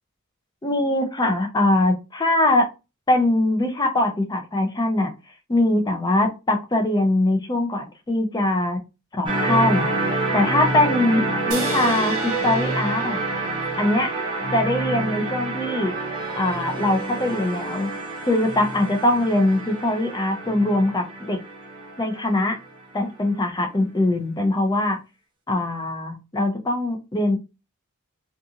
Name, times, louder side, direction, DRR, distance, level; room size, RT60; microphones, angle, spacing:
voice 1, 0.6-2.7 3.1-5.1 5.5-8.8 9.1-9.9 10.3-13.2 13.8-14.1 14.5-15.9 16.4-17.9 18.3-21.4 22.0-22.6 22.9-25.0 25.5-27.4, left 1 dB, 20° left, 5 dB, 0.5 m, -22 dB
sound 1, 9.3-22.8, right 2 dB, 25° right, 0.7 m, -27 dB
sound 2, 11.5-15.0, right 3 dB, 85° right, 1.0 m, -35 dB
2.5 x 2.4 x 2.7 m, 0.28 s
head